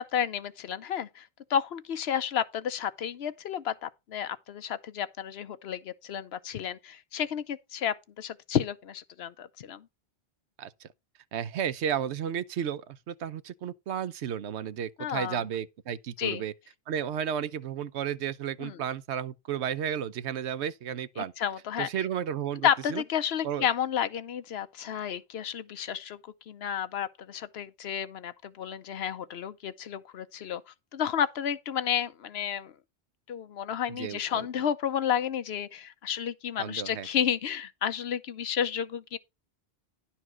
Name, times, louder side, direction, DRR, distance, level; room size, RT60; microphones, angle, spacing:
voice 1, 0.0-9.9 15.0-15.4 16.2-16.4 18.6-18.8 21.2-21.9 22.6-26.2 26.5-30.6 30.9-32.7 33.3-39.2, left 9 dB, 70° left, 0.9 m, -31 dB
voice 2, 10.6-10.9 11.3-16.5 16.9-21.3 21.8-23.0 23.4-23.7 33.9-34.5 36.6-37.1, right 9 dB, 85° right, 1.0 m, -33 dB
11.0 x 4.3 x 6.1 m
omnidirectional pair, 1.1 m